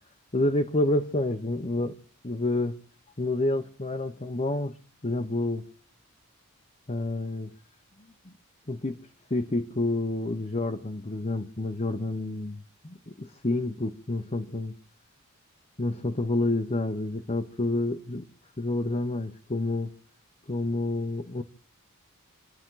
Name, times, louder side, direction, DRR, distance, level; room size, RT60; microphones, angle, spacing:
voice 1, 0.3-2.0 2.2-2.8 3.2-4.8 5.0-5.6 6.9-7.5 8.2-8.3 8.7-9.0 9.3-14.7 15.8-18.3 18.6-19.9 20.5-21.4, left 2 dB, 30° left, 3 dB, 1.0 m, -29 dB
29.0 x 10.5 x 3.9 m, 0.43 s
head